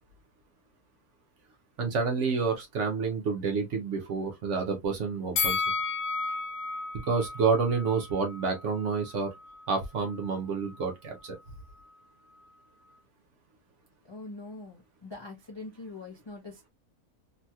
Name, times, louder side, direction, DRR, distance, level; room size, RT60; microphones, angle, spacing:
voice 1, 1.8-5.6 6.9-9.3 9.7-11.3, right 5 dB, 60° right, 0.9 m, -29 dB
Bell, 5.4-8.5 8.9-9.0, left 4 dB, 65° left, 1.0 m, -32 dB
voice 2, 14.0-16.7, left 3 dB, 35° left, 0.4 m, -43 dB
3.0 x 2.9 x 2.3 m
omnidirectional pair, 1.7 m